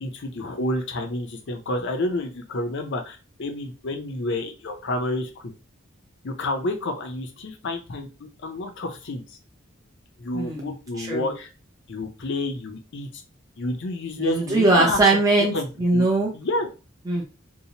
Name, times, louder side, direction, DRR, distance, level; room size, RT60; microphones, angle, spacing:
voice 1, 0.0-5.3 6.2-8.1 8.4-9.2 10.2-11.5 11.9-13.1 13.6-15.0 15.5-16.1 16.3-16.7, left 2 dB, 60° left, 5 dB, 0.6 m, -29 dB
voice 2, 10.3-10.7 11.0-11.3 14.2-16.3 17.1-17.2, right 2 dB, 15° right, -2 dB, 0.5 m, -21 dB
2.8 x 2.0 x 2.8 m, 0.31 s
head